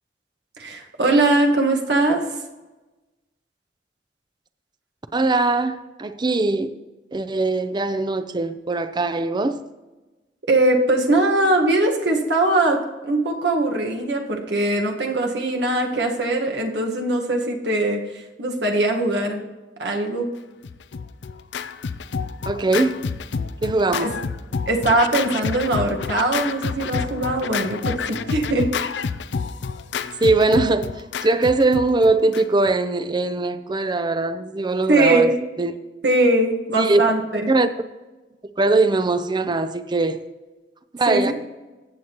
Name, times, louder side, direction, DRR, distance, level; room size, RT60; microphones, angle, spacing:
voice 1, 0.6-2.2 10.5-19.4 19.8-20.3 24.7-28.7 34.9-35.4 36.0-37.5 41.1-41.3, right 2 dB, 75° right, 1.4 m, -21 dB
voice 2, 5.1-6.7 7.1-9.6 22.5-23.1 23.6-24.3 30.2-30.9 31.2-35.3 35.6-35.7 36.8-37.0 37.5-37.7 38.6-40.2 41.0-41.3, right 2 dB, 25° right, 0.6 m, -21 dB
Scratching (performance technique), 20.6-32.7, left 5 dB, 85° left, 0.5 m, -29 dB
15.0 x 8.0 x 3.0 m
head